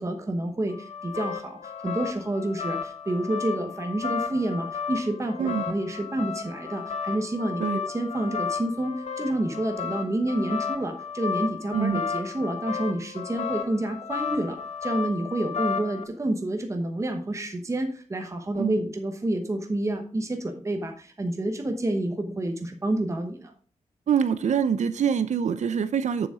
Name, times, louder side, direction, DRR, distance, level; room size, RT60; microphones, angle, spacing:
voice 1, 0.0-23.5, right 1 dB, 25° right, 4 dB, 1.1 m, -29 dB
sound 1, 0.7-16.0, left 6 dB, 65° left, 1.2 m, -33 dB
voice 2, 24.1-26.3, right 7 dB, 70° right, 12 dB, 0.6 m, -25 dB
7.2 x 7.0 x 4.9 m, 0.43 s
wide cardioid pair, 140°, 12 cm